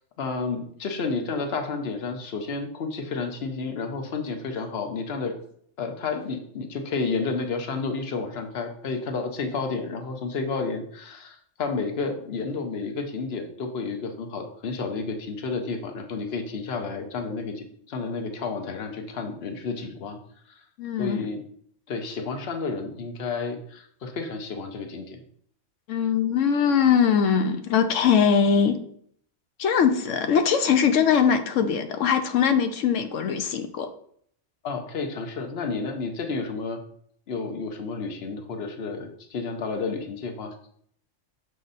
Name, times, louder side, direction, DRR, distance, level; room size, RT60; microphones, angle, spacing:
voice 1, 0.2-5.3 5.8-20.2 21.0-21.4 21.9-25.2 34.6-36.8 37.3-40.5, left 4 dB, 55° left, 5 dB, 1.1 m, -31 dB
voice 2, 20.8-21.3 25.9-28.8 29.6-33.9, left 7 dB, 80° left, 8 dB, 1.0 m, -21 dB
6.7 x 4.9 x 4.0 m, 0.64 s
omnidirectional pair, 1.3 m